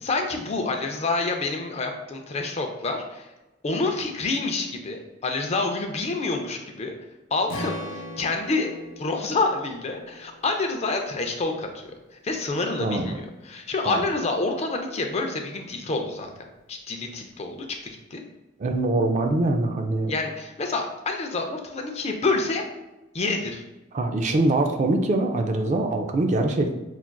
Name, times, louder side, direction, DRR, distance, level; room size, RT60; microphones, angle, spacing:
voice 1, 0.0-3.3 3.6-7.0 7.3-16.3 16.7-18.2 20.1-22.6 23.1-23.6, left 3 dB, 35° left, 4 dB, 0.4 m, -28 dB
Strum, 7.5-11.8, left 1 dB, 85° left, 0.7 m, -39 dB
voice 2, 12.8-13.2 13.9-14.0 18.6-20.1 23.9-26.7, right 2 dB, 35° right, 5 dB, 0.3 m, -23 dB
5.6 x 2.4 x 2.2 m, 1.0 s
head